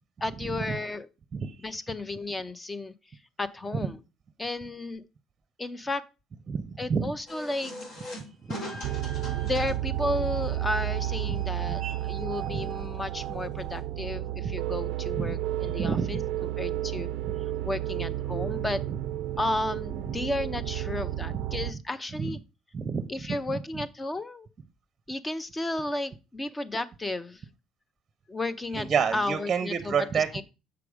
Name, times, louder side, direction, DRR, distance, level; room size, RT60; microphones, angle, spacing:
voice 1, 0.2-1.1 1.6-2.9 3.4-4.0 4.4-5.0 5.6-6.0 6.8-7.7 9.4-16.2 16.6-17.1 17.6-18.8 19.4-22.4 23.1-24.5 25.1-27.4 28.3-30.4, left 2 dB, 15° left, 15 dB, 0.6 m, -33 dB
voice 2, 1.3-1.7 6.5-7.0 8.4-8.6 11.3-11.4 11.6-11.9 12.4-12.7 15.2-15.3 15.6-16.2 17.2-17.3 21.3-21.4 22.1-22.3 22.7-23.6 28.7-30.4, right 6 dB, 30° right, 11 dB, 0.7 m, -30 dB
sound 1, 7.3-13.8, left 1 dB, 60° left, 3.9 m, -44 dB
sound 2, 8.8-21.7, right 13 dB, 75° right, 0.4 m, -32 dB
6.9 x 4.9 x 4.8 m, 0.29 s
cardioid pair, 135°, 0 cm